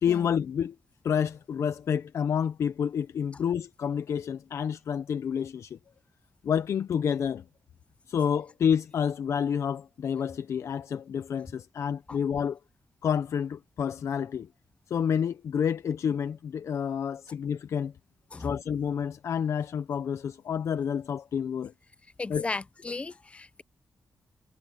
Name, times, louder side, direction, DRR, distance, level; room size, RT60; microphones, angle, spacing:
voice 1, 0.0-0.8 1.0-5.8 6.4-7.4 8.1-12.6 13.0-14.5 14.9-17.9 18.4-21.7 22.3-22.4, left 8 dB, 70° left, 0.7 m, -29 dB
voice 2, 22.2-23.6, left 3 dB, 25° left, 0.5 m, -35 dB
cardioid pair, 105°, 5 cm